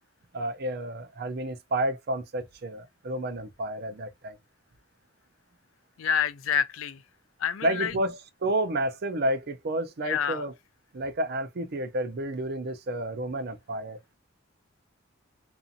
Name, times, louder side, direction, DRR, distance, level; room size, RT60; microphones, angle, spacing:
voice 1, 0.3-4.4 7.6-10.5 10.9-14.0, right 1 dB, 50° right, 0.5 m, -30 dB
voice 2, 6.0-7.0 7.4-7.9 10.0-10.4, left 8 dB, 80° left, 0.4 m, -27 dB
2.6 x 2.5 x 2.6 m
head